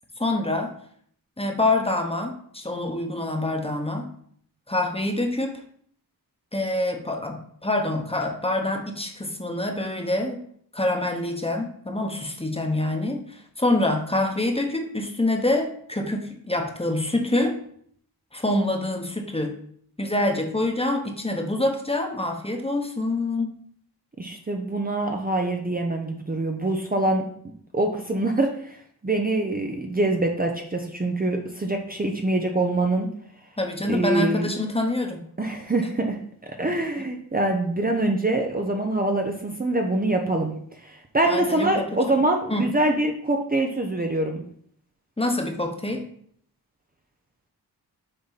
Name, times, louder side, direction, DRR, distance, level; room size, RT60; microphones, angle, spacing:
voice 1, 0.2-0.7 1.4-4.1 4.7-5.6 6.5-10.4 10.7-17.6 18.3-19.6 20.0-23.5 33.6-35.2 41.2-41.8 42.5-42.6 45.2-46.1, left 1 dB, 15° left, 3 dB, 1.2 m, -26 dB
voice 2, 24.2-27.3 27.7-33.1 33.9-34.5 35.4-44.4, right 2 dB, 20° right, 2 dB, 0.8 m, -25 dB
6.8 x 3.8 x 4.1 m, 0.63 s
cardioid pair, 55°, 40 cm